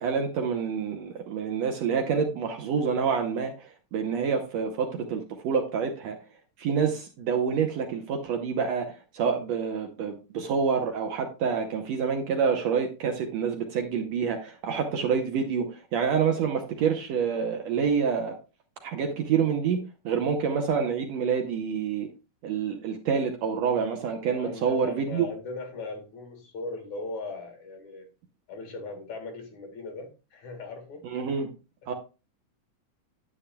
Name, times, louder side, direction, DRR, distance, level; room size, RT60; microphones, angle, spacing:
voice 1, 0.0-6.2 6.6-18.4 18.8-22.1 22.4-25.3 31.0-31.5 31.9-32.0, right 6 dB, 70° right, 4 dB, 1.8 m, -27 dB
voice 2, 24.4-28.1 28.5-31.3 31.8-31.9, left 3 dB, 65° left, 3 dB, 3.2 m, -38 dB
10.0 x 8.8 x 2.3 m, 0.30 s
omnidirectional pair, 3.7 m